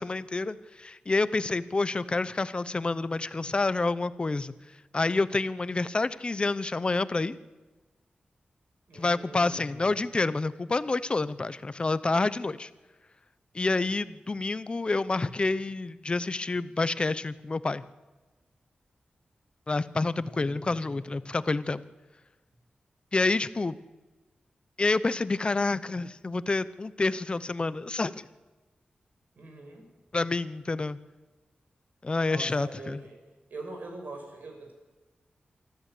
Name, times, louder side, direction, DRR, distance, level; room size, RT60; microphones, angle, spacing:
voice 1, 0.0-4.5 4.9-7.4 8.9-12.7 13.5-17.8 19.7-21.8 23.1-23.8 24.8-28.2 30.1-31.0 32.0-33.0, left 3 dB, 35° left, 15 dB, 0.8 m, -28 dB
voice 2, 8.9-10.0 20.2-21.2 29.4-29.9 32.3-33.2 33.5-34.7, right 2 dB, 70° right, 3 dB, 6.0 m, -43 dB
24.0 x 14.0 x 8.5 m, 1.2 s
wide cardioid pair, 115°, 3 cm